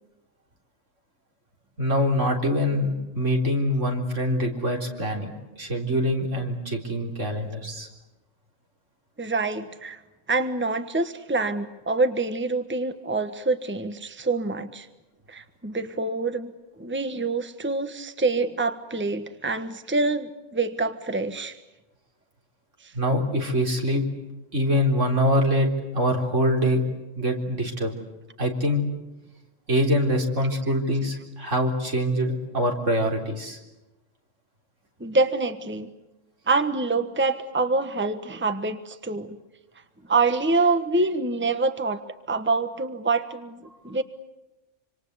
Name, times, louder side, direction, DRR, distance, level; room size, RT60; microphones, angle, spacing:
voice 1, 1.8-5.3 5.6-7.9 22.9-24.0 24.5-25.7 25.9-26.8 27.2-27.9 28.4-28.8 29.7-33.6, equal, 75° right, 2 dB, 4.2 m, -24 dB
voice 2, 9.2-10.0 10.3-14.9 15.3-16.5 16.8-21.5 35.0-35.9 36.5-39.4 40.1-44.0, right 3 dB, 10° right, 9 dB, 1.2 m, -26 dB
26.0 x 26.0 x 8.2 m, 1.0 s
omnidirectional pair, 1.3 m